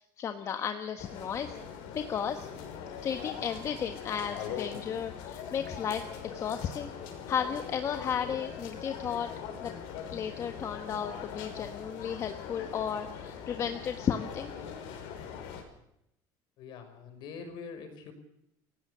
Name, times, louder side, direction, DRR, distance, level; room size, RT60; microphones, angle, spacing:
voice 1, 0.2-1.5 1.9-2.5 3.0-6.9 7.3-9.3 9.6-9.7 10.1-14.5, left 8 dB, 30° left, 7 dB, 1.3 m, -34 dB
sound 1, 1.0-15.6, left 7 dB, 75° left, 5.6 m, -42 dB
voice 2, 16.6-18.1, left 5 dB, 55° left, 8 dB, 5.4 m, -44 dB
28.0 x 17.0 x 6.9 m, 0.80 s
cardioid pair, 160°, 9 cm